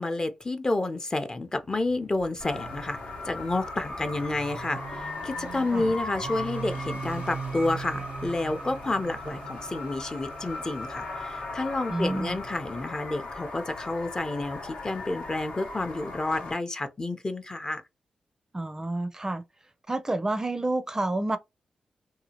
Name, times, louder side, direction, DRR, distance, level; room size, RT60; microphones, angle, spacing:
voice 1, 0.0-3.0 3.2-17.8, left 2 dB, 30° left, 0.6 m, -30 dB
Motorcycle, 1.5-13.2, right 5 dB, 90° right, 0.6 m, -42 dB
sound 1, 2.4-16.5, left 2 dB, 75° left, 0.9 m, -38 dB
voice 2, 11.9-12.4 18.5-19.4 19.9-21.4, right 2 dB, 25° right, 0.4 m, -29 dB
2.7 x 2.4 x 2.7 m
cardioid pair, 55°, 2 cm